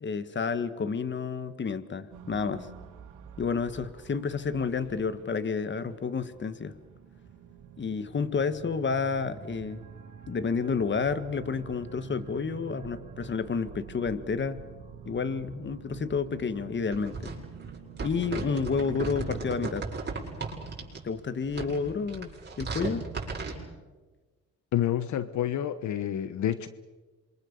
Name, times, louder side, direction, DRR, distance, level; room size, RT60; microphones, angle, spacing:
voice 1, 0.0-2.7 3.4-6.8 7.8-9.8 10.3-14.6 15.0-17.3 18.0-19.9 21.0-22.3 22.6-23.0, left 5 dB, 40° left, 12 dB, 1.7 m, -30 dB
sound 1, 2.1-19.7, right 7 dB, 75° right, 2.9 m, -47 dB
sound 2, 16.9-21.0 21.4-23.6, right 4 dB, 35° right, 7.1 m, -36 dB
voice 2, 24.7-26.7, left 11 dB, 70° left, 13 dB, 1.1 m, -28 dB
27.5 x 24.0 x 6.9 m, 1.3 s
cardioid pair, 90°, 30 cm